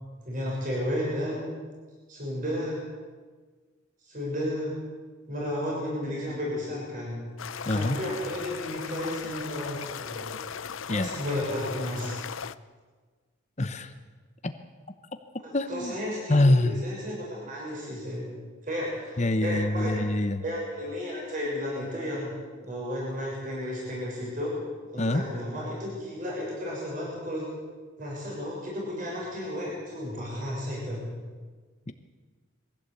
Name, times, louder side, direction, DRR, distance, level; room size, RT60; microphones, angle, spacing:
voice 1, 0.2-1.5 2.1-2.8 4.0-4.8 5.3-7.2 7.5-10.3 10.9-12.2 15.4-18.3 18.6-20.0 20.4-24.6 24.9-27.5 28.0-31.0, left 1 dB, 40° right, -4 dB, 6.7 m, -33 dB
sound 1, 7.4-12.5, left 7 dB, 80° left, 0.7 m, -37 dB
voice 2, 7.7-8.0 10.9-11.1 13.6-13.9 14.4-14.6 15.5-15.9 16.3-16.8 19.2-20.4 25.0-25.3 31.9-32.0, left 1 dB, 35° left, 8 dB, 0.9 m, -25 dB
22.5 x 16.0 x 8.3 m, 1.4 s
head